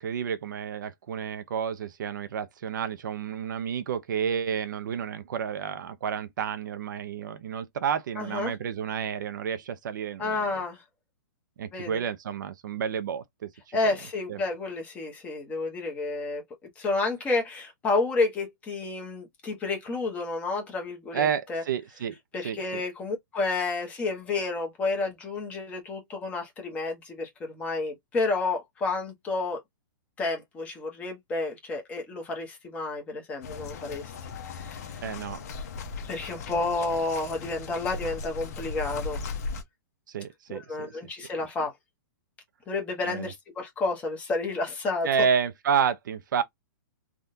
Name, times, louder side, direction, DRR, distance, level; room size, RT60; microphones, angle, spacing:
voice 1, 0.0-10.5 11.6-14.0 14.3-14.4 21.1-22.2 22.4-22.8 35.0-35.4 40.1-40.9 43.0-43.3 45.0-46.4, right 7 dB, 60° right, 0.6 m, -30 dB
voice 2, 8.2-8.5 10.2-10.8 11.7-12.0 13.7-16.4 16.8-21.6 22.3-29.6 30.2-34.1 34.5-35.0 36.1-39.2 40.5-41.7 42.7-45.1, left 3 dB, 10° left, 0.9 m, -30 dB
sound 1, 33.4-39.6, left 4 dB, 45° left, 0.8 m, -37 dB
3.6 x 2.3 x 2.7 m
hypercardioid pair, 170°, 12 cm